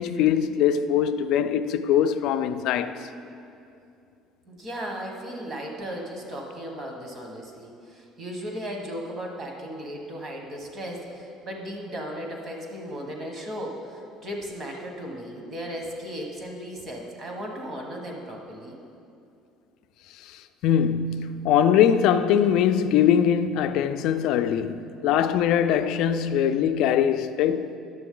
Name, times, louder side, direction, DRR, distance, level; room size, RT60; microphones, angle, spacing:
voice 1, 0.0-3.0 20.2-27.7, left 9 dB, 70° left, 0.4 m, -22 dB
voice 2, 4.5-18.8, equal, 35° right, 1.4 m, -36 dB
10.5 x 7.0 x 3.8 m
cardioid pair, 135°, 0 cm